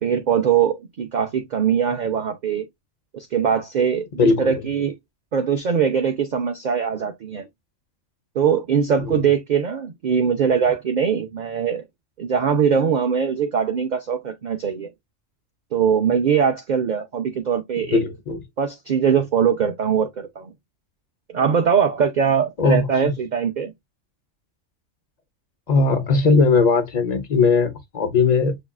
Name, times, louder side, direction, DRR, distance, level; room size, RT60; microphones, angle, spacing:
voice 1, 0.0-2.7 3.1-4.9 5.3-7.5 8.3-11.8 12.2-14.9 15.7-18.0 18.6-20.5 21.3-23.7, right 7 dB, 65° right, 0.4 m, -21 dB
voice 2, 4.2-4.5 9.0-9.2 17.9-18.4 22.6-22.9 25.7-28.6, left 4 dB, 45° left, 0.6 m, -18 dB
6.9 x 2.3 x 2.3 m
omnidirectional pair, 1.3 m